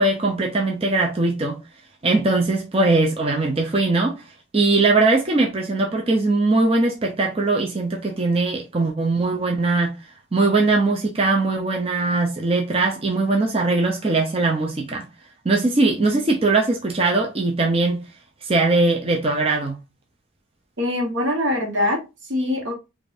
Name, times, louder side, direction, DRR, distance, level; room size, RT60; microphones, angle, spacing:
voice 1, 0.0-1.6 2.0-4.2 4.5-9.9 10.3-15.1 15.4-18.0 18.4-19.8, right 3 dB, 30° right, 0.6 m, -20 dB
voice 2, 20.8-22.7, left 1 dB, 70° right, 1.3 m, -23 dB
5.0 x 2.6 x 2.6 m
head